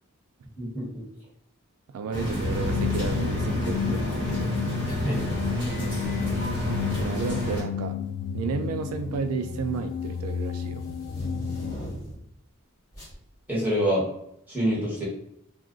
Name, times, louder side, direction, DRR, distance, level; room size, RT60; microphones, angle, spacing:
voice 1, 1.9-4.6 6.9-8.0 8.3-10.8, right 5 dB, 80° right, 11 dB, 0.3 m, -32 dB
sound 1, 2.1-7.6, equal, 25° right, 1.3 m, -29 dB
sound 2, 2.4-11.8, left 7 dB, 85° left, 0.3 m, -32 dB
voice 2, 4.9-5.3 13.5-14.0 14.5-15.0, equal, 10° right, -6 dB, 1.2 m, -26 dB
sound 3, 7.7-7.8 8.1-12.3 12.9-13.2, equal, 15° left, 1.4 m, -41 dB
2.4 x 2.4 x 3.7 m, 0.76 s
head